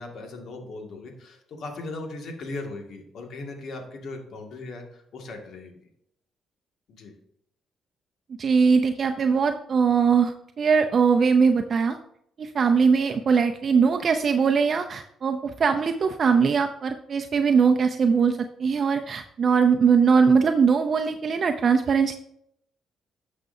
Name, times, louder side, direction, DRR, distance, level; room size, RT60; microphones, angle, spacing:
voice 1, 0.0-5.7 6.9-7.1, left 2 dB, 65° left, 2 dB, 1.9 m, -38 dB
voice 2, 8.4-12.0 12.4-22.1, right 5 dB, 50° right, 6 dB, 0.5 m, -21 dB
12.0 x 6.6 x 2.7 m, 0.71 s
cardioid pair, 90°, 0 cm